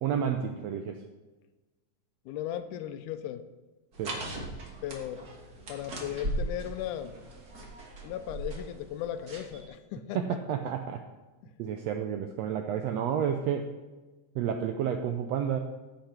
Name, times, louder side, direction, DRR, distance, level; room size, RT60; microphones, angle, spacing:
voice 1, 0.0-1.0 4.0-4.2 10.1-11.0 11.6-13.7 14.3-15.6, right 8 dB, 90° right, 5 dB, 1.5 m, -30 dB
voice 2, 2.3-3.4 4.8-5.2 5.7-7.2 8.0-10.2 11.4-11.5, left 11 dB, 85° left, 11 dB, 2.1 m, -36 dB
sound 1, 3.9-9.7, right 1 dB, 40° right, 1.5 m, -39 dB
15.5 x 5.9 x 4.3 m, 1.2 s
omnidirectional pair, 3.6 m